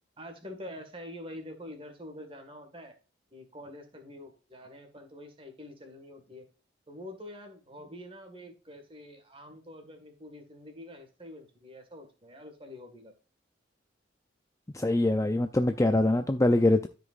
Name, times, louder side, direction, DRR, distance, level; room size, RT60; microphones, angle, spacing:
voice 1, 0.2-2.9 3.3-6.5 6.9-13.1, left 1 dB, 25° right, 1.8 m, -46 dB
voice 2, 14.7-16.9, left 1 dB, 15° left, 0.4 m, -24 dB
13.0 x 5.1 x 2.5 m
head